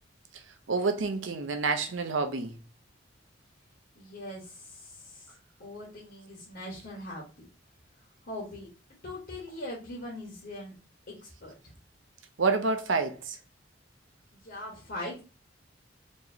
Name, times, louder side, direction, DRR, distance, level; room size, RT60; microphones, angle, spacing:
voice 1, 0.7-2.5 12.4-13.4, right 4 dB, 90° right, 0.7 m, -28 dB
voice 2, 3.9-5.3 5.6-7.2 8.3-8.7 9.0-10.7 11.1-11.7 14.3-15.2, left 1 dB, 55° left, 1.5 m, -41 dB
4.5 x 3.0 x 2.8 m
head